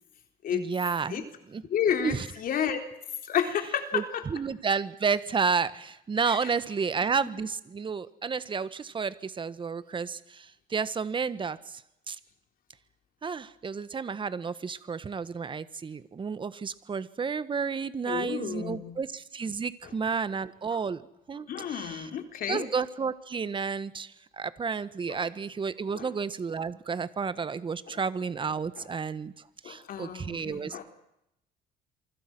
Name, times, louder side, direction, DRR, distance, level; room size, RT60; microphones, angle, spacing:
voice 1, 0.5-1.6 2.0-2.3 3.9-11.8 12.1-12.2 13.2-21.0 21.3-22.1 22.5-29.3 29.6-30.8, right 5 dB, 30° right, 15 dB, 1.5 m, -31 dB
voice 2, 1.7-2.8 3.3-4.2 6.3-6.5 18.0-19.0 20.7-20.8 21.5-22.7 25.1-25.2 25.9-26.1 27.9-28.0 28.8-28.9 29.6-30.8, left 8 dB, 60° left, 7 dB, 3.8 m, -31 dB
27.5 x 24.5 x 6.2 m, 0.81 s
cardioid pair, 110°, 17 cm